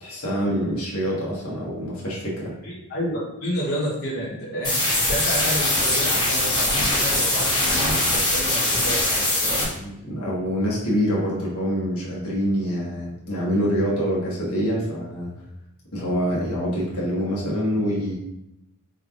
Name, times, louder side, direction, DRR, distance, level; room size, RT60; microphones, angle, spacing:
voice 1, 0.0-2.5 9.7-15.3 15.9-18.1, equal, 70° left, -6 dB, 1.4 m, -25 dB
voice 2, 2.6-9.7, equal, 45° left, -8 dB, 1.1 m, -30 dB
sound 1, 4.6-9.6, left 1 dB, 20° left, 1.3 m, -22 dB
4.8 x 3.4 x 2.5 m, 0.86 s
head